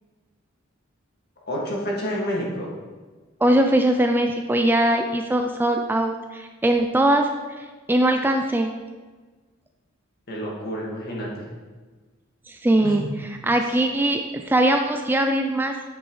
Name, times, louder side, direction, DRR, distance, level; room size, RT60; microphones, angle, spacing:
voice 1, 1.5-2.7 10.3-11.5 12.8-13.1, equal, 50° left, -3 dB, 1.9 m, -29 dB
voice 2, 3.4-7.3 7.6-8.7 12.5-15.7, right 1 dB, 10° right, 5 dB, 0.3 m, -21 dB
8.8 x 6.2 x 3.2 m, 1.3 s
head